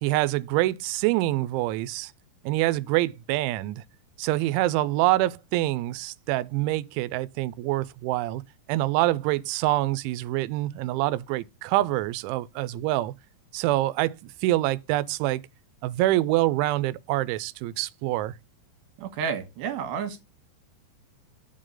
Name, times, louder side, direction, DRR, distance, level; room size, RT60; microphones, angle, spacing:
voice 1, 0.0-2.1 2.4-3.8 4.2-8.4 8.7-13.1 13.5-15.4 15.8-18.3, right 17 dB, 90° right, 3.0 m, -26 dB
voice 2, 19.0-20.2, right 7 dB, 70° right, 3.3 m, -31 dB
7.9 x 3.8 x 6.5 m
omnidirectional pair, 5.3 m